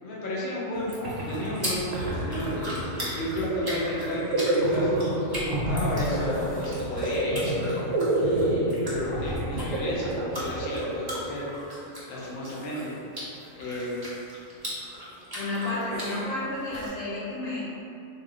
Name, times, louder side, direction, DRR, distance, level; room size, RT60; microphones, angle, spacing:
voice 1, 0.0-2.8 3.1-5.1 5.4-7.8 8.2-11.5 12.1-12.9 13.5-14.0 15.9-16.2, left 1 dB, 50° left, -7 dB, 0.7 m, -33 dB
sound 1, 0.7-16.9, equal, 25° right, 0.5 m, -39 dB
sound 2, 0.8-0.9 1.0-11.6, right 1 dB, 65° right, 1.0 m, -29 dB
voice 2, 15.3-17.6, left 2 dB, 75° left, -8 dB, 1.3 m, -31 dB
2.8 x 2.0 x 3.7 m, 2.6 s
omnidirectional pair, 1.4 m